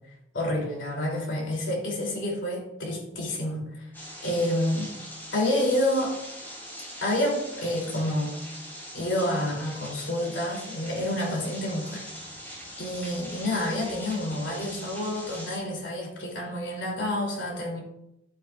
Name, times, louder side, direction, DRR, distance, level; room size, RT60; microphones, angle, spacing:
voice 1, 0.3-3.9 4.2-4.9 5.3-6.2 7.0-8.4 8.9-12.1 12.8-17.8, left 1 dB, 70° left, -2 dB, 3.2 m, -28 dB
sound 1, 3.9-15.6, equal, 10° left, 3.9 m, -42 dB
11.5 x 9.2 x 2.5 m, 0.85 s
head